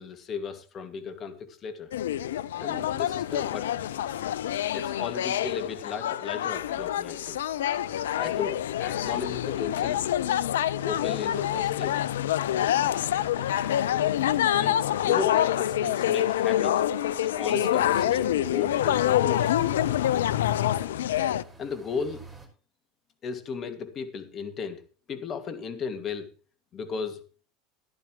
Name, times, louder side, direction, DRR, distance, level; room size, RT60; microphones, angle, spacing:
voice 1, 0.0-1.9 2.6-3.7 4.7-7.4 8.2-10.0 10.8-12.0 14.5-14.8 15.0-16.8 17.2-19.5 21.6-22.2 23.2-26.3 26.7-27.3, left 6 dB, 40° left, 9 dB, 2.3 m, -35 dB
sound 1, 1.9-21.4, left 11 dB, 85° left, 0.6 m, -26 dB
sound 2, 10.0-22.5, right 1 dB, 5° right, 5.5 m, -55 dB
15.0 x 11.5 x 3.2 m, 0.37 s
hypercardioid pair, 90°, 0 cm